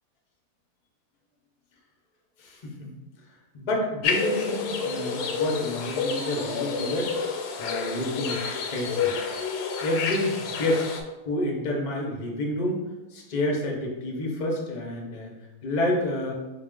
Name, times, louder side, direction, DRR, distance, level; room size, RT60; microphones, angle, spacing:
voice 1, 2.4-2.9 3.5-7.1 7.6-8.4 8.7-9.1 9.8-10.8 11.2-12.8 13.1-15.3 15.6-16.3, left 1 dB, 40° left, -1 dB, 0.6 m, -29 dB
sound 1, 4.0-11.0, left 5 dB, 90° left, 1.1 m, -29 dB
3.8 x 2.4 x 3.6 m, 1.1 s
omnidirectional pair, 1.7 m